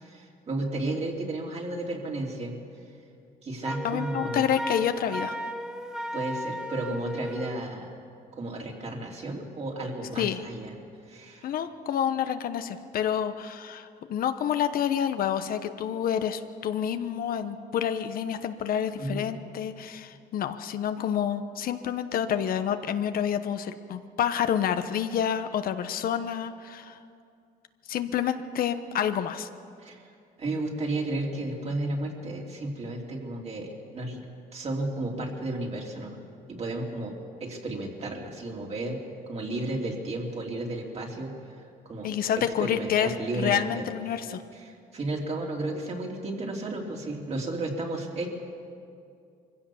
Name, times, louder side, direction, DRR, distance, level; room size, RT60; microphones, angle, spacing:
voice 1, 0.0-2.5 3.4-4.5 6.1-7.9 8.3-10.7 11.1-11.5 19.0-19.3 29.8-30.0 30.4-34.2 34.5-36.2 36.5-37.1 37.4-39.0 39.3-41.3 41.8-42.1 42.6-43.8 44.5-48.3, right 2 dB, 40° right, 0 dB, 3.2 m, -33 dB
Wind instrument woodwind instrument, 3.6-7.6, equal, 5° right, 1.0 m, -35 dB
voice 2, 3.8-5.4 10.2-10.4 11.4-27.0 27.9-29.5 42.0-44.4, left 9 dB, 60° left, 9 dB, 1.0 m, -28 dB
23.0 x 16.0 x 7.1 m, 2.4 s
cardioid pair, 110°, 17 cm